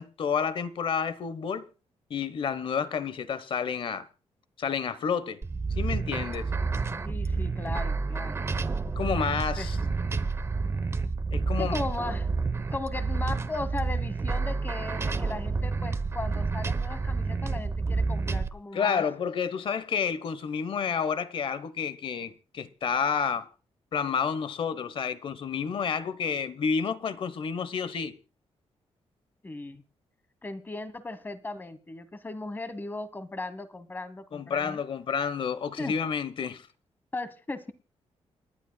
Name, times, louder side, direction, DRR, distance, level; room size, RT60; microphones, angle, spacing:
voice 1, 0.0-1.6 2.1-4.1 4.6-5.4 5.8-6.5 8.9-9.8 11.3-11.8 18.7-23.5 23.9-28.2 34.3-36.7, left 6 dB, 50° left, 1.0 m, -30 dB
sound 1, 5.4-18.5, right 4 dB, 25° right, 0.8 m, -29 dB
voice 2, 7.0-8.4 9.6-9.7 11.6-12.3 12.7-19.0 29.4-29.8 30.4-34.8 35.8-35.9 37.1-37.7, left 2 dB, 20° left, 1.2 m, -37 dB
29.5 x 11.0 x 2.2 m
wide cardioid pair, 150°, 11 cm